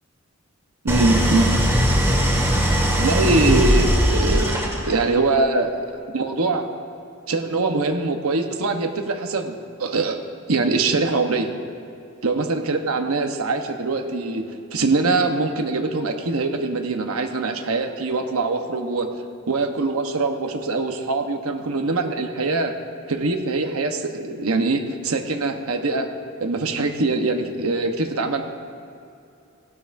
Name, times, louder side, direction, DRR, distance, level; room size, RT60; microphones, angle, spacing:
voice 1, 0.8-1.6 3.0-5.8 6.1-6.7 7.3-10.2 10.5-11.5 12.2-14.4 14.7-19.1 19.5-22.7 23.1-26.1 26.4-28.4, right 3 dB, 85° right, 5 dB, 1.0 m, -23 dB
Idling, 0.9-5.1, equal, 10° right, 1.6 m, -19 dB
17.5 x 12.5 x 2.6 m, 2.6 s
head